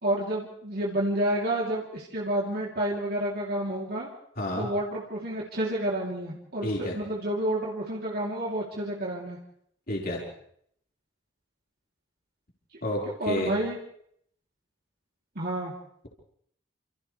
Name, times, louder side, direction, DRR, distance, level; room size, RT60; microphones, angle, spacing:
voice 1, 0.0-4.1 4.6-9.4 13.2-13.8 15.3-15.7, right 1 dB, 55° right, -4 dB, 3.3 m, -29 dB
voice 2, 4.4-4.7 6.6-7.0 9.9-10.2 12.8-13.5, left 1 dB, 50° left, -3 dB, 5.0 m, -30 dB
29.5 x 28.0 x 3.4 m, 0.68 s
head